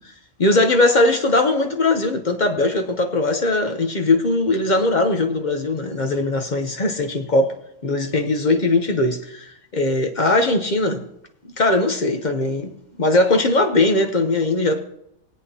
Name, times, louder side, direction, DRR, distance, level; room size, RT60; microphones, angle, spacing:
voice 1, 0.4-7.5 7.8-11.1 11.6-12.7 13.0-14.9, left 2 dB, 40° left, 0.7 m, -20 dB
22.0 x 8.3 x 2.8 m
omnidirectional pair, 1.7 m